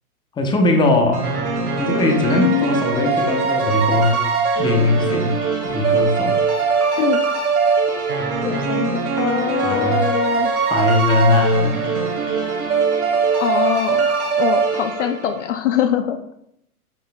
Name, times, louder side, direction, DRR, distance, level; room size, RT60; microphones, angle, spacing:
voice 1, 0.4-1.4 1.8-4.2 4.6-5.4 5.6-6.4 9.6-10.1 10.7-11.9, left 2 dB, 10° left, 3 dB, 0.8 m, -19 dB
sound 1, 1.1-15.4, right 5 dB, 80° right, 1.8 m, -21 dB
voice 2, 2.3-3.2 7.0-7.2 8.4-10.5 13.4-14.1 14.4-16.2, left 10 dB, 55° left, 9 dB, 0.6 m, -23 dB
9.0 x 5.6 x 2.3 m, 0.75 s
figure-of-eight pair, 110°, 45 cm